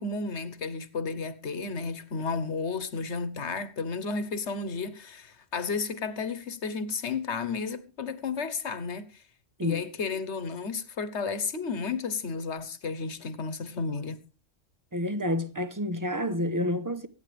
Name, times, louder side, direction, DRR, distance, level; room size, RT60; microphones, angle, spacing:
voice 1, 0.0-9.2 9.6-14.2, left 4 dB, 80° left, 1.5 m, -32 dB
voice 2, 14.9-17.1, left 1 dB, 20° right, 0.9 m, -29 dB
24.0 x 9.3 x 3.4 m
omnidirectional pair, 1.2 m